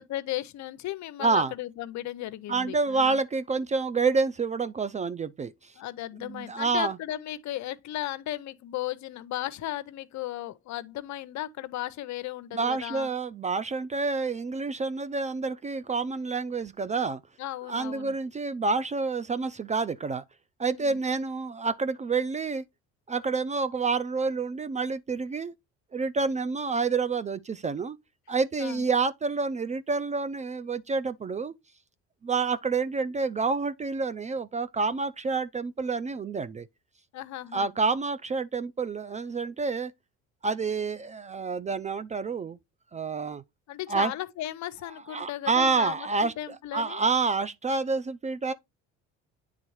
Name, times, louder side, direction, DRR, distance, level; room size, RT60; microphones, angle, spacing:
voice 1, 0.0-3.2 5.8-13.1 17.4-18.2 20.8-21.0 28.6-28.8 37.1-37.7 43.7-47.0, left 14 dB, 60° left, 0.7 m, -36 dB
voice 2, 1.2-1.5 2.5-5.7 6.2-7.0 12.5-17.2 17.7-20.2 20.6-22.6 23.1-25.5 25.9-28.0 28.3-31.5 32.2-36.7 37.5-39.9 40.4-42.6 42.9-43.4 43.9-44.1 45.1-48.5, right 4 dB, 20° right, 0.4 m, -28 dB
9.1 x 3.6 x 3.0 m
supercardioid pair, 90°, 33 cm